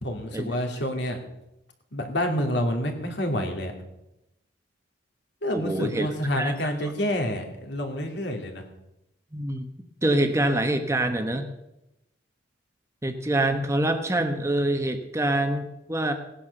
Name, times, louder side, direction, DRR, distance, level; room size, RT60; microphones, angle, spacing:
voice 1, 0.0-1.2 1.9-3.7 5.4-8.6, equal, 60° left, 4 dB, 2.8 m, -28 dB
voice 2, 5.5-6.1 6.4-6.5 6.8-6.9 9.3-9.7 10.0-11.4 13.0-16.1, right 1 dB, 15° right, 7 dB, 1.1 m, -25 dB
18.0 x 10.0 x 6.6 m, 0.90 s
head